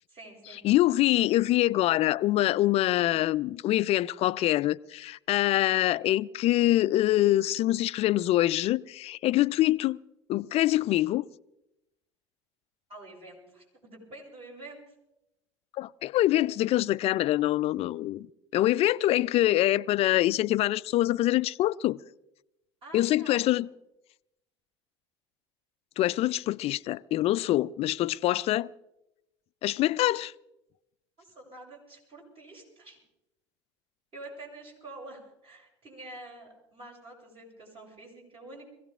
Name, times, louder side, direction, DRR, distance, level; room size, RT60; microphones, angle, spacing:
voice 1, 0.1-0.6 12.9-14.9 22.8-23.5 31.2-33.0 34.1-38.7, right 2 dB, 40° right, 7.2 m, -47 dB
voice 2, 0.6-10.0 10.3-11.2 15.8-18.3 18.5-22.0 22.9-23.7 26.0-28.7 29.6-30.3, left 15 dB, 45° left, 0.4 m, -25 dB
22.5 x 16.5 x 3.7 m
hypercardioid pair, 70°, 15 cm